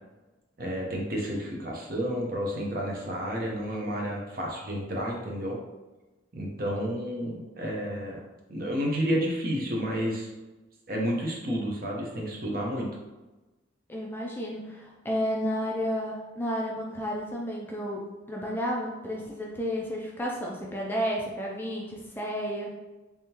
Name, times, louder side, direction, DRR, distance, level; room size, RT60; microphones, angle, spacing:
voice 1, 0.6-5.6 6.3-8.2 8.5-10.3 10.9-12.9, equal, 50° right, -1 dB, 0.8 m, -31 dB
voice 2, 13.9-22.8, equal, 10° left, -2 dB, 0.4 m, -32 dB
3.5 x 3.4 x 2.9 m, 1.1 s
head